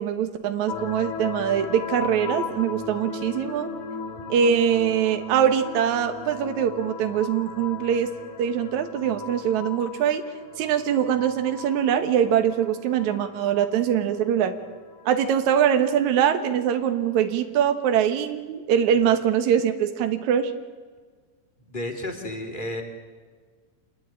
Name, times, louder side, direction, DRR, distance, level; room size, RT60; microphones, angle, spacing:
voice 1, 0.0-3.7 4.3-8.1 8.4-10.2 10.6-14.5 15.0-20.5, right 8 dB, 80° right, 7 dB, 1.7 m, -23 dB
sound 1, 0.7-17.2, left 5 dB, 60° left, 4.2 m, -38 dB
voice 2, 21.6-22.8, left 1 dB, 15° left, 3 dB, 1.8 m, -32 dB
28.0 x 21.0 x 8.9 m, 1.5 s
omnidirectional pair, 5.4 m